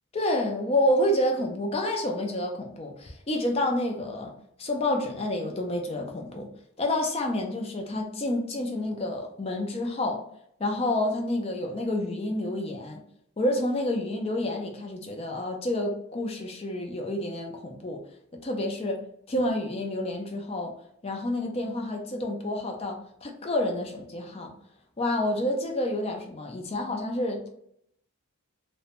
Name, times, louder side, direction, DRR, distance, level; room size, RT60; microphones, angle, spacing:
voice 1, 0.1-4.3 4.6-6.5 6.8-10.2 10.6-13.0 13.4-18.0 18.3-19.0 19.3-20.7 21.0-24.5 25.0-27.5, left 1 dB, 25° left, 3 dB, 0.4 m, -29 dB
2.5 x 2.1 x 2.8 m, 0.71 s
head